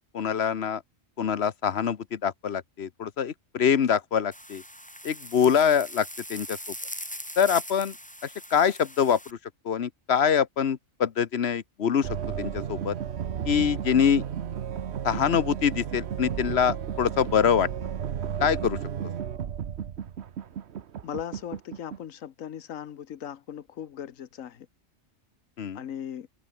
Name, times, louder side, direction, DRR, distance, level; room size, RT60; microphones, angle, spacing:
voice 1, 0.1-0.8 1.2-4.6 5.0-6.6 7.4-7.9 8.2-9.4 9.6-12.1 12.4-12.9 13.4-14.3 15.0-17.7 18.4-18.8 25.6-25.8, left 7 dB, 55° left, 1.2 m, -24 dB
sound 1, 4.3-9.3, equal, 5° left, 4.3 m, -40 dB
sound 2, 12.0-22.0, right 8 dB, 60° right, 1.1 m, -33 dB
voice 2, 21.0-24.7 25.7-26.3, left 9 dB, 80° left, 1.4 m, -38 dB
omnidirectional pair, 1.4 m